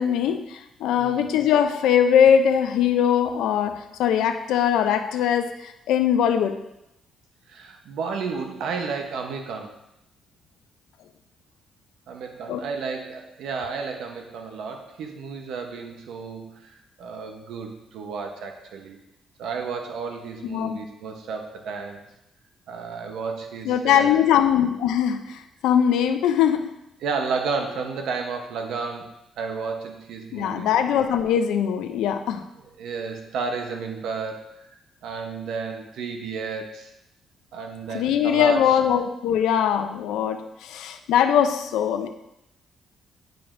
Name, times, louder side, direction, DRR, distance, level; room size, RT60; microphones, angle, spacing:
voice 1, 0.0-6.6 12.5-12.6 20.4-20.8 23.6-26.7 30.3-32.4 37.9-42.1, left 9 dB, 85° left, 7 dB, 0.4 m, -21 dB
voice 2, 1.0-1.3 7.5-9.7 12.1-19.0 19.4-22.0 22.7-24.2 27.0-29.1 29.4-30.7 32.8-34.5 35.0-36.9 37.5-38.8, right 5 dB, 80° right, 5 dB, 0.8 m, -32 dB
9.1 x 5.1 x 2.6 m, 0.86 s
cardioid pair, 90°, 0 cm